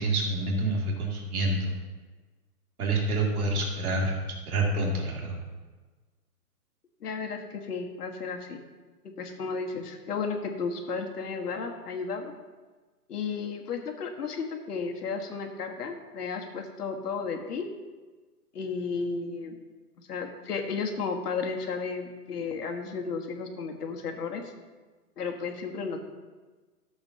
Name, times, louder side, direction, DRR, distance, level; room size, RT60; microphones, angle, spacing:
voice 1, 0.0-1.7 2.8-4.1 4.5-5.4, right 2 dB, 65° right, -1 dB, 2.6 m, -27 dB
voice 2, 7.0-8.6 9.2-12.3 13.1-17.7 18.5-19.5 20.0-24.5 25.2-26.0, left 5 dB, 75° left, 4 dB, 1.5 m, -33 dB
13.5 x 7.2 x 2.8 m, 1.3 s
hypercardioid pair, 170°, 48 cm